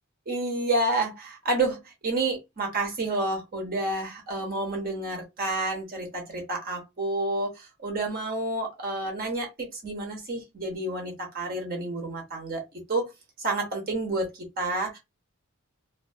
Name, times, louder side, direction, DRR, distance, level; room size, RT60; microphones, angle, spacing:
voice 1, 0.3-12.6 12.9-13.1 13.4-14.3 14.6-15.0, right 2 dB, 40° right, 0.7 m, -29 dB
2.5 x 2.3 x 2.5 m
head